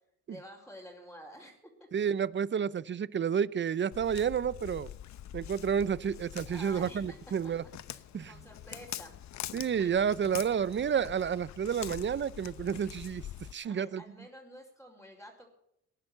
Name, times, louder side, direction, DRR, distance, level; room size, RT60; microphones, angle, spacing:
voice 1, 0.3-1.9 6.4-7.2 7.9-8.0 8.3-9.2 9.8-10.0 10.4-10.5 13.7-15.5, equal, 5° left, -5 dB, 4.8 m, -50 dB
voice 2, 1.9-4.9 5.3-7.6 8.1-8.3 9.5-13.2 13.5-14.0, right 7 dB, 40° right, 19 dB, 0.7 m, -30 dB
Walk footsteps, 3.9-13.5, left 11 dB, 65° left, 0.9 m, -45 dB
19.0 x 10.5 x 6.7 m, 0.75 s
cardioid pair, 90°, 30 cm